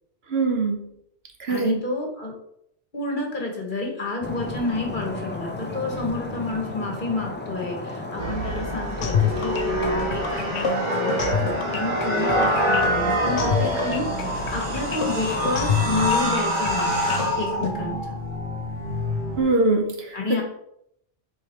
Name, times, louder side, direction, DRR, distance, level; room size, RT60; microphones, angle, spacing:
voice 1, 0.3-0.9 1.4-1.8 19.4-20.4, right 3 dB, 60° right, 3 dB, 1.3 m, -23 dB
voice 2, 1.5-2.3 2.9-18.0 20.1-20.4, left 3 dB, 45° left, 0 dB, 1.5 m, -30 dB
sound 1, 4.2-16.1, left 2 dB, 15° left, 0.5 m, -34 dB
sound 2, 8.2-19.4, equal, 45° right, 1.6 m, -26 dB
sound 3, 9.0-17.7, left 8 dB, 70° left, 1.0 m, -28 dB
4.9 x 4.6 x 4.3 m, 0.74 s
omnidirectional pair, 1.2 m